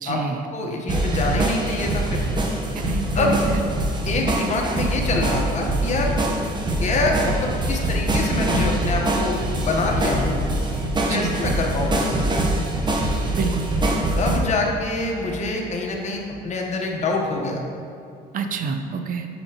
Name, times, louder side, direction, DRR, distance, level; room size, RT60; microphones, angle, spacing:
voice 1, 0.0-0.4 2.7-3.7 11.1-11.4 13.4-13.7 18.3-19.3, right 5 dB, 55° right, 6 dB, 0.6 m, -27 dB
voice 2, 0.5-2.2 3.1-3.5 4.0-6.2 6.8-10.4 11.1-12.1 14.2-17.6, left 3 dB, 45° left, 0 dB, 1.1 m, -25 dB
sound 1, 0.9-14.4, right 1 dB, 25° right, 0.9 m, -24 dB
sound 2, 1.1-16.5 17.3-17.4, right 1 dB, 85° right, 1.0 m, -37 dB
7.0 x 6.4 x 2.9 m, 2.6 s
cardioid pair, 110°, 17 cm